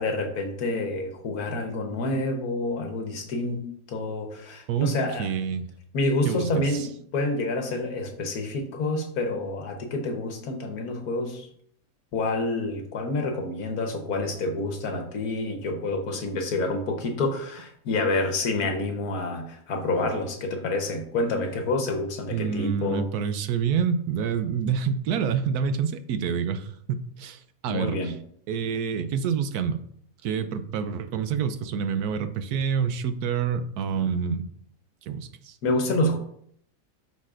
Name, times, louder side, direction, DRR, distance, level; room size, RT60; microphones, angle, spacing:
voice 1, 0.0-5.3 5.9-11.5 12.1-23.1 27.7-28.1 35.6-36.2, left 2 dB, 80° left, 4 dB, 1.5 m, -28 dB
voice 2, 5.2-5.7 6.2-6.9 22.3-28.2 28.5-29.8 30.2-34.4 35.0-35.6, right 7 dB, 90° right, 10 dB, 1.2 m, -27 dB
12.0 x 4.1 x 2.5 m, 0.66 s
omnidirectional pair, 1.6 m